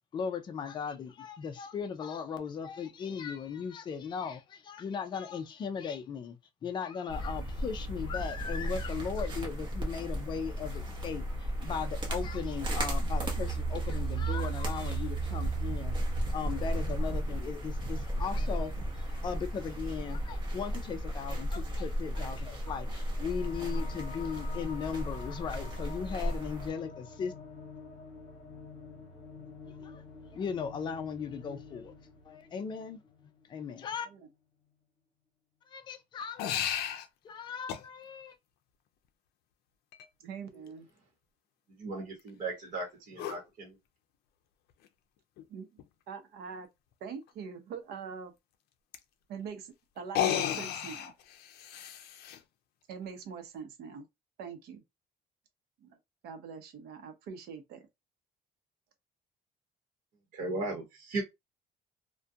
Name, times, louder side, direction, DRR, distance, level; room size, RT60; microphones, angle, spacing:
voice 1, 0.1-6.4 6.6-27.3 29.7-30.0 30.3-31.9 32.2-33.0 33.5-34.1 35.7-36.9 37.2-38.4, left 6 dB, 30° left, 0.4 m, -38 dB
sound 1, 7.1-26.7, right 1 dB, 30° right, 0.8 m, -34 dB
sound 2, 23.0-33.9, left 5 dB, 50° left, 0.8 m, -48 dB
sound 3, 36.4-37.1 37.7-37.8 39.9-40.0 43.2-43.4 44.8-44.9 45.4-45.5 45.8-45.9 48.9-49.0 50.0-52.4, left 10 dB, 90° left, 0.4 m, -33 dB
voice 2, 40.2-40.9 45.5-45.7 46.1-46.7 47.0-48.3 49.3-51.1 52.9-54.0 54.4-54.8 55.8-56.0 56.2-57.8, right 6 dB, 85° right, 0.7 m, -43 dB
voice 3, 41.8-43.7 60.3-61.2, right 2 dB, 50° right, 1.0 m, -36 dB
2.3 x 2.2 x 2.6 m
cardioid pair, 165°, 16 cm